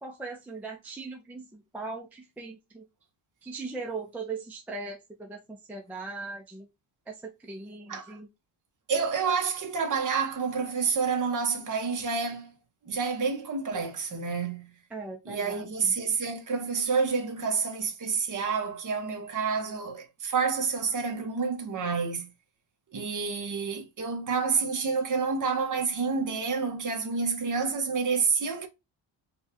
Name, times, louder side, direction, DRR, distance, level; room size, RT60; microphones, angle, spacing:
voice 1, 0.0-2.9 3.4-6.7 7.1-8.3 14.9-15.9, right 3 dB, 5° right, 0.5 m, -39 dB
voice 2, 8.9-12.5 12.8-14.7 15.3-22.3 22.9-28.7, right 5 dB, 40° right, 1.1 m, -29 dB
5.3 x 2.4 x 2.8 m
cardioid pair, 160°, 49 cm